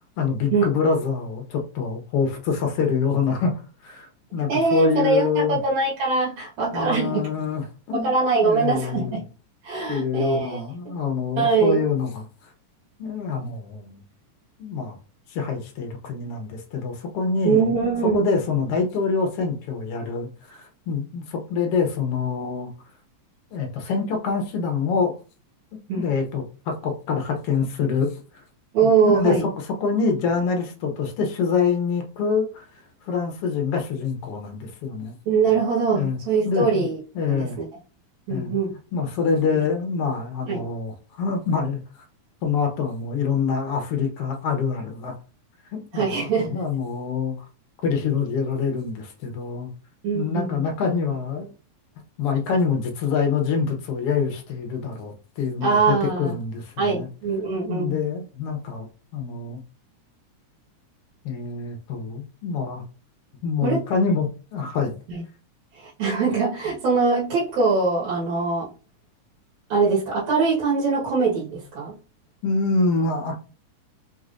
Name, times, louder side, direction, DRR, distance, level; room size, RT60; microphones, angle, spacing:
voice 1, 0.2-5.6 6.7-8.1 8.4-9.2 9.9-12.5 13.0-14.0 14.6-15.0 15.3-17.7 18.1-22.7 23.5-25.1 25.9-28.2 28.8-29.4 29.6-32.7 33.0-35.1 35.9-36.2 36.4-36.9 37.1-37.6 38.3-38.6 38.9-41.8 42.4-45.1 45.7-47.4 47.8-49.7 50.1-51.5 52.2-57.1 57.7-59.6 61.2-62.8 63.4-65.0 72.4-73.4, left 5 dB, 70° left, 3 dB, 1.5 m, -25 dB
voice 2, 4.5-7.3 7.9-9.2 9.6-10.6 11.4-11.8 17.4-18.3 25.9-26.0 28.7-29.4 35.3-37.0 37.3-37.5 38.3-38.7 40.5-40.6 45.9-46.6 50.0-50.5 55.6-56.3 56.8-58.0 63.6-63.8 65.1-65.2 65.7-68.7 69.7-71.9, right 4 dB, 65° right, -6 dB, 2.6 m, -22 dB
5.7 x 3.1 x 2.5 m, 0.34 s
omnidirectional pair, 3.5 m